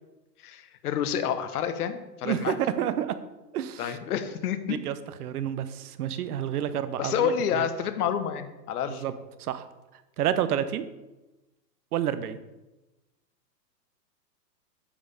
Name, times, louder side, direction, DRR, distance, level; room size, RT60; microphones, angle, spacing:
voice 1, 0.4-2.6 3.8-4.8 7.0-9.0, left 8 dB, 65° left, 10 dB, 1.1 m, -29 dB
voice 2, 2.2-3.1 3.5-4.0 4.7-7.3 8.9-9.1 9.4-9.7 10.2-10.8 11.9-12.4, right 10 dB, 65° right, 12 dB, 0.9 m, -29 dB
8.6 x 5.4 x 5.2 m, 1.0 s
hypercardioid pair, 135°, 49 cm